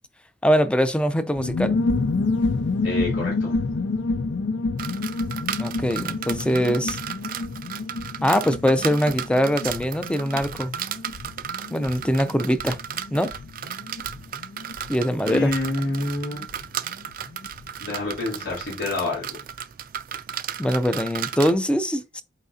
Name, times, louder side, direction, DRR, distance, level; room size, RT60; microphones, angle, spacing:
voice 1, 0.4-1.8 5.6-7.0 8.2-10.7 11.7-12.8 13.1-13.3 14.9-15.5 20.6-22.2, equal, 5° left, 0.5 m, -22 dB
sound 1, 1.4-17.7 17.9-18.0 18.2-18.6, left 3 dB, 70° left, 0.5 m, -29 dB
voice 2, 2.8-3.6 15.2-16.4 17.8-19.3, left 2 dB, 85° left, 3.3 m, -27 dB
sound 2, 4.8-21.5, right 9 dB, 50° right, 0.4 m, -35 dB
8.4 x 4.2 x 2.8 m
head